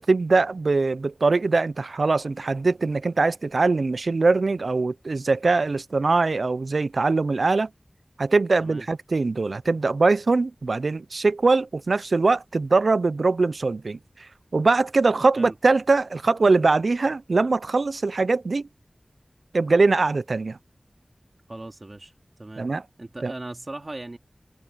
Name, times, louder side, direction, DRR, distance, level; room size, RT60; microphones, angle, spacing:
voice 1, 0.0-7.7 8.2-14.0 14.5-18.7 19.5-20.6 22.6-22.8 23.2-23.3, right 3 dB, 90° right, 0.4 m, -22 dB
voice 2, 21.5-22.1 22.4-22.7 23.0-24.2, right 2 dB, 50° right, 2.5 m, -38 dB
wide cardioid pair, 45°, 0 cm